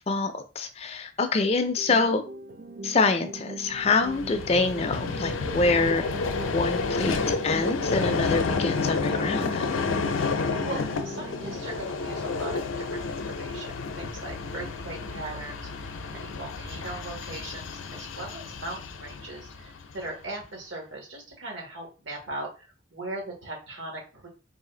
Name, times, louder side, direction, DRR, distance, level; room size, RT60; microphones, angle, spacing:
voice 1, 0.1-2.2 2.8-6.0 6.4-9.8, left 3 dB, 30° left, 8 dB, 0.4 m, -26 dB
sound 1, 1.8-11.8, right 2 dB, 45° right, 0.3 m, -41 dB
Vehicle, 3.7-20.1, left 4 dB, 85° left, 0.5 m, -30 dB
voice 2, 10.6-24.3, right 2 dB, 80° right, -1 dB, 1.8 m, -39 dB
4.0 x 2.5 x 3.7 m, 0.33 s
head